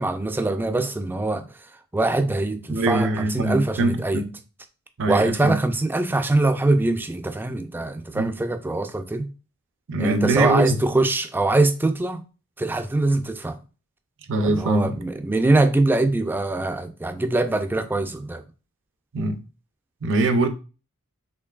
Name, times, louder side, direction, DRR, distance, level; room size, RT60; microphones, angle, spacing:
voice 1, 0.0-1.5 1.9-4.2 5.1-9.3 10.0-12.2 12.6-13.6 14.4-18.4, right 2 dB, 10° right, 0.3 m, -23 dB
voice 2, 2.7-4.3 5.0-5.6 8.1-8.3 9.9-10.8 14.3-14.9 19.1-19.4 20.0-20.5, right 2 dB, 60° right, 0.6 m, -22 dB
4.5 x 3.1 x 2.3 m
head